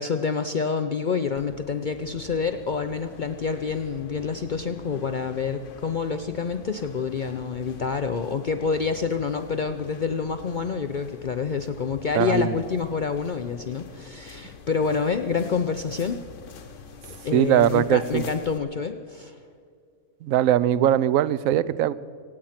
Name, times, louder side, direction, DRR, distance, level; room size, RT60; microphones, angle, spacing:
voice 1, 0.0-16.2 17.2-19.4, left 5 dB, 75° left, 8 dB, 0.4 m, -27 dB
sound 1, 1.4-18.6, left 5 dB, 55° left, 1.2 m, -45 dB
voice 2, 12.2-12.6 17.3-18.2 20.2-21.9, right 11 dB, 70° right, 17 dB, 0.9 m, -21 dB
25.5 x 8.8 x 5.8 m, 2.2 s
omnidirectional pair, 1.6 m